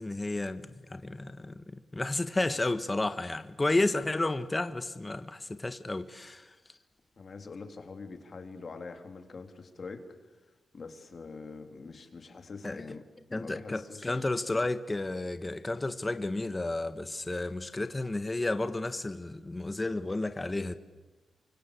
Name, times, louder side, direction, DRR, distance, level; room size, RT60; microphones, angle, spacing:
voice 1, 0.0-6.5 12.6-12.8 13.3-20.8, left 2 dB, 25° left, 1.4 m, -32 dB
voice 2, 7.2-10.1 10.7-13.0 13.4-14.2, left 4 dB, 55° left, 3.5 m, -44 dB
28.0 x 25.0 x 8.4 m
cardioid pair, 75°, 0 cm